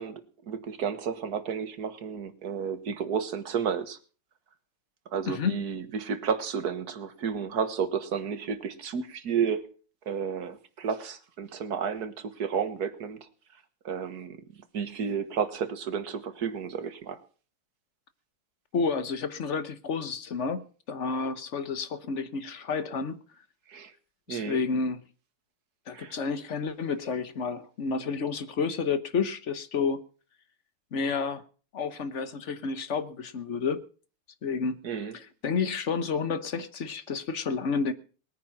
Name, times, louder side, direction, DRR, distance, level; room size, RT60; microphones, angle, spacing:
voice 1, 0.0-4.0 5.1-9.6 10.1-13.3 13.9-14.4 14.7-17.2 23.7-23.9 24.3-24.6 25.9-26.2 34.8-35.1, right 7 dB, 50° right, 1.8 m, -32 dB
voice 2, 5.3-5.6 18.7-23.2 24.3-25.0 25.9-30.0 30.9-31.4 31.7-33.8 34.4-34.8 35.1-37.9, left 5 dB, 45° left, 1.0 m, -30 dB
20.0 x 9.4 x 5.9 m
omnidirectional pair, 2.4 m